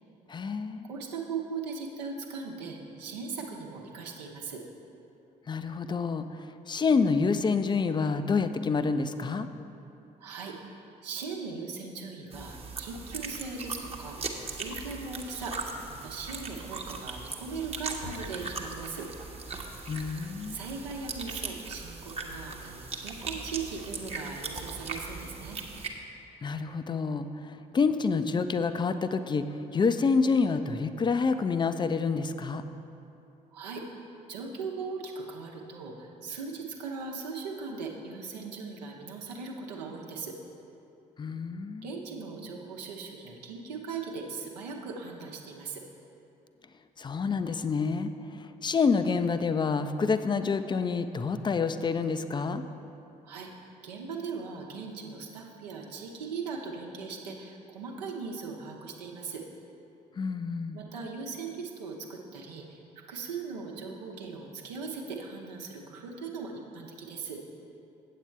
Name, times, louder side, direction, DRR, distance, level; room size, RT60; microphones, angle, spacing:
voice 1, 0.3-0.9 5.5-9.5 19.9-20.6 26.4-29.4 29.7-32.6 41.2-41.9 47.0-52.6 60.2-60.8, left 4 dB, 20° left, 10 dB, 0.5 m, -28 dB
voice 2, 0.8-4.6 10.2-19.1 20.5-25.6 33.5-33.8 34.3-40.4 41.8-45.8 53.2-53.5 53.8-59.4 60.7-62.8 63.1-67.4, right 4 dB, 75° right, 0 dB, 0.9 m, -39 dB
sound 1, 12.3-25.9, right 4 dB, 30° right, 1.0 m, -39 dB
Knock, 18.0-18.9, left 3 dB, 50° left, 1.1 m, -46 dB
8.3 x 8.1 x 4.5 m, 2.8 s
figure-of-eight pair, 45°, 21 cm